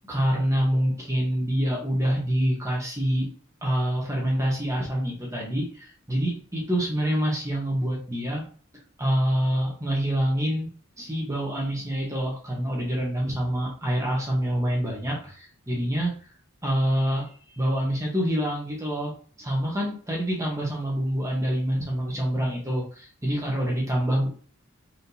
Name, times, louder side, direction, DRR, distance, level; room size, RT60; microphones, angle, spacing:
voice 1, 0.0-3.3 3.6-8.4 9.0-10.7 11.0-16.1 16.6-24.3, equal, 15° right, -3 dB, 1.2 m, -26 dB
4.3 x 3.6 x 2.8 m, 0.43 s
head